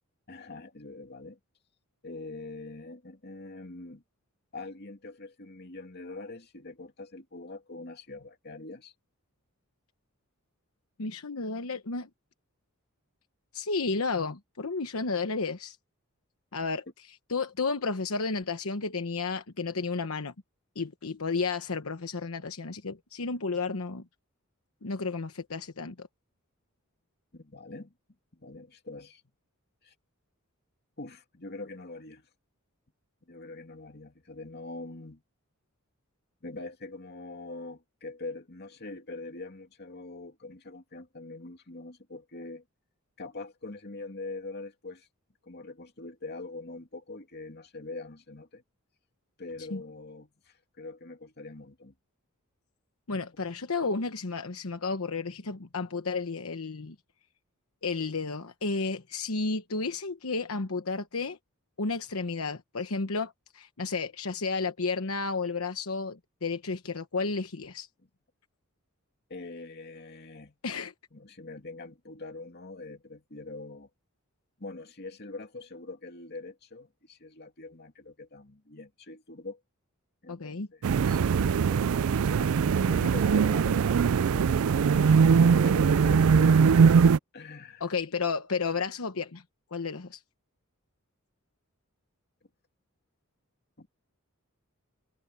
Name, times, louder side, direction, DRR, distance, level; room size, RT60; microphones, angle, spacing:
voice 1, 0.3-1.4 2.0-4.0 4.5-8.9 27.3-27.9 28.3-29.2 29.8-29.9 31.0-32.3 33.3-35.2 36.4-42.6 43.2-45.1 45.4-48.6 49.4-51.9 69.3-70.6 71.1-73.9 74.6-79.6 80.2-86.8 87.3-87.8 93.8-93.9, left 3 dB, 50° left, 2.6 m, -43 dB
voice 2, 11.0-12.1 13.5-15.8 16.5-16.8 17.3-20.3 20.8-24.0 24.8-26.1 49.7-49.8 53.1-56.9 57.8-61.4 61.8-67.9 70.6-70.9 80.3-80.7 87.8-89.4 89.7-90.2, left 4 dB, 75° left, 1.1 m, -32 dB
sound 1, 80.8-87.2, right 6 dB, 70° right, 0.4 m, -21 dB
head